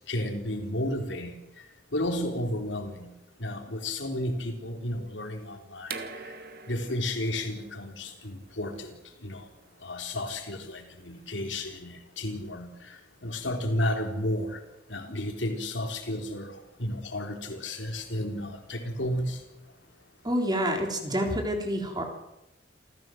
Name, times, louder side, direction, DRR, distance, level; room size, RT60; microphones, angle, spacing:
voice 1, 0.1-1.3 1.9-3.1 3.4-6.0 6.7-9.0 9.2-9.4 9.8-13.0 13.2-14.6 14.9-16.5 16.8-19.4, left 1 dB, 75° left, 4 dB, 3.7 m, -32 dB
sound 1, 5.8-11.4, right 5 dB, 55° right, 2.2 m, -45 dB
voice 2, 20.2-22.0, equal, 20° right, 3 dB, 3.8 m, -28 dB
28.0 x 15.0 x 7.8 m, 0.95 s
head